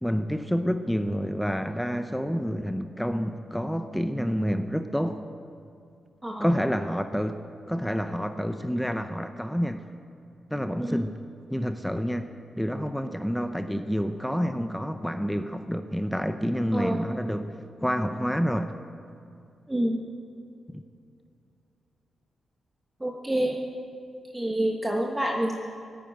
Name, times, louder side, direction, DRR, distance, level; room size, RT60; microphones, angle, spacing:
voice 1, 0.0-5.3 6.4-9.8 10.5-11.2 11.5-12.3 12.6-18.7 20.7-20.8, equal, ahead, 8 dB, 0.7 m, -28 dB
voice 2, 19.7-20.0 23.0-23.6 24.3-25.5, right 1 dB, 15° right, 0 dB, 1.3 m, -27 dB
17.0 x 9.3 x 9.0 m, 2.5 s
cardioid pair, 95°, 0 cm